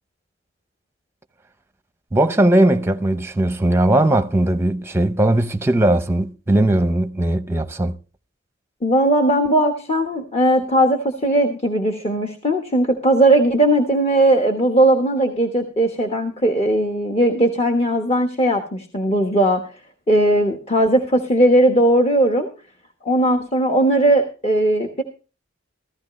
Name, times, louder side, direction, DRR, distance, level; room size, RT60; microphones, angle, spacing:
voice 1, 2.1-8.0, right 1 dB, 10° right, 0.7 m, -18 dB
voice 2, 8.8-19.6 20.1-22.5 23.0-25.0, right 1 dB, 30° left, 1.2 m, -18 dB
15.0 x 14.5 x 3.1 m
head